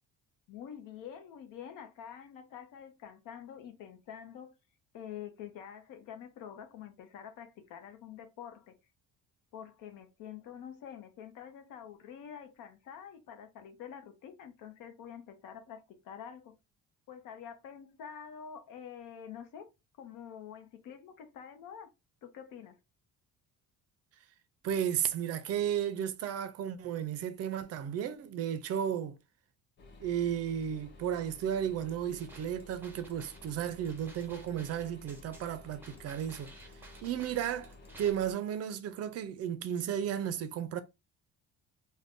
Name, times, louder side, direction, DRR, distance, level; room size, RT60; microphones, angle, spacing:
voice 1, 0.5-4.5 4.9-8.8 9.5-16.5 17.1-19.7 20.0-21.9 22.2-22.8, left 8 dB, 80° left, 0.7 m, -47 dB
voice 2, 24.6-29.2 30.0-36.5 37.0-40.8, right 9 dB, 50° right, 0.4 m, -34 dB
sound 1, 29.8-38.3, left 2 dB, 35° left, 0.7 m, -54 dB
sound 2, 32.2-38.1, right 2 dB, 5° right, 0.6 m, -55 dB
2.5 x 2.2 x 3.5 m
cardioid pair, 150°, 32 cm